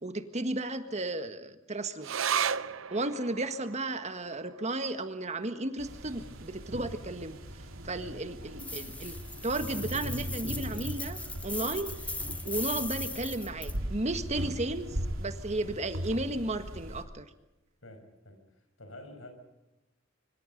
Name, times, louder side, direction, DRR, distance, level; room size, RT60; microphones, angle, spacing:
voice 1, 0.0-2.1 2.9-7.4 7.8-9.1 9.4-11.9 12.4-17.2, right 2 dB, 35° right, 9 dB, 1.7 m, -34 dB
sound 1, 2.0-8.8 9.1-9.2 9.5-10.2 10.8-10.9, right 8 dB, 75° right, 0.7 m, -38 dB
sound 2, 5.8-17.0, equal, 90° right, 3.0 m, -39 dB
voice 2, 7.9-8.2 15.6-15.9 17.8-19.3, left 1 dB, 80° left, 7 dB, 5.7 m, -49 dB
sound 3, 8.6-13.8, left 2 dB, 5° left, 1.0 m, -39 dB
25.0 x 25.0 x 5.3 m, 0.95 s
head